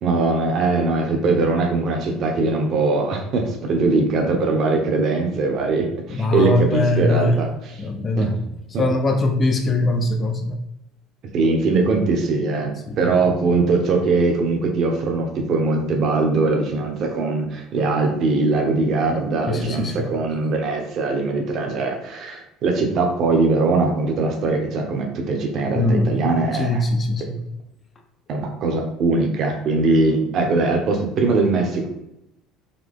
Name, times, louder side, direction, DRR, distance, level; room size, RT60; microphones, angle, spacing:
voice 1, 0.0-7.8 8.2-8.5 8.7-8.8 11.3-26.8 28.3-31.9, right 3 dB, 45° right, 2 dB, 0.9 m, -21 dB
voice 2, 6.1-7.4 7.8-8.4 8.8-10.6 12.9-13.0 19.5-20.1 25.7-26.2 26.5-27.4, left 2 dB, 25° left, 5 dB, 0.5 m, -21 dB
3.9 x 2.8 x 3.6 m, 0.86 s
cardioid pair, 145°, 0 cm